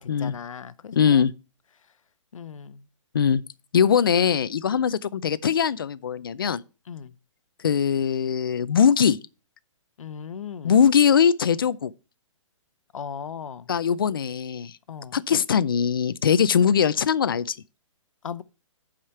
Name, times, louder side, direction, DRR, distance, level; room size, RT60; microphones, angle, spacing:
voice 1, 0.0-1.2 2.3-2.8 6.9-7.1 10.0-10.8 12.9-13.7 14.9-15.2 18.2-18.4, left 7 dB, 80° left, 0.8 m, -37 dB
voice 2, 0.9-1.3 3.1-3.4 3.7-6.6 7.6-9.2 10.6-11.9 13.7-14.7 15.1-17.6, left 7 dB, 45° left, 0.4 m, -21 dB
11.0 x 5.0 x 4.4 m
hypercardioid pair, 180°, 17 cm